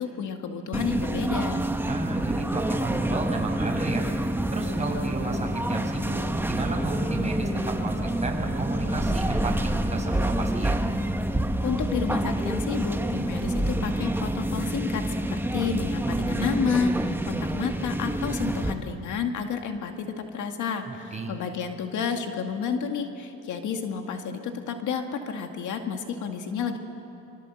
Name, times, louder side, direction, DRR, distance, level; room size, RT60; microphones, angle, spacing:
voice 1, 0.0-1.6 11.6-20.1 20.3-26.8, left 6 dB, 80° left, 5 dB, 2.1 m, -30 dB
sound 1, 0.7-18.7, right 1 dB, 5° right, 1.3 m, -27 dB
voice 2, 1.9-4.1 4.5-6.2 6.5-9.5 9.9-10.8 20.9-21.3, right 3 dB, 20° right, 0 dB, 6.2 m, -33 dB
25.0 x 25.0 x 7.8 m, 2.9 s
cardioid pair, 90°, 30 cm